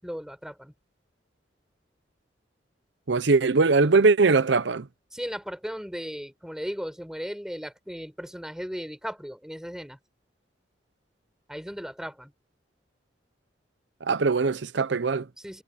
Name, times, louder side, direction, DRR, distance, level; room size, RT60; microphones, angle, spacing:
voice 1, 0.0-0.7 5.1-10.0 11.5-12.3 15.4-15.6, equal, 5° right, 6.3 m, -36 dB
voice 2, 3.1-4.9 14.0-15.3, right 4 dB, 70° right, 0.7 m, -21 dB
head